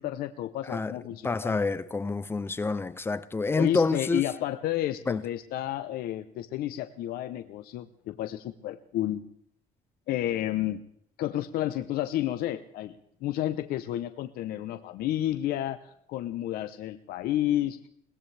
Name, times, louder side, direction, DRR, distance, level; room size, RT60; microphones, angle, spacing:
voice 1, 0.0-1.6 3.6-9.2 10.1-10.8 11.2-17.8, left 13 dB, 70° left, 0.8 m, -31 dB
voice 2, 1.2-4.2 5.1-5.2, left 3 dB, 15° left, 0.5 m, -27 dB
21.5 x 18.5 x 3.4 m
cardioid pair, 160°, 16 cm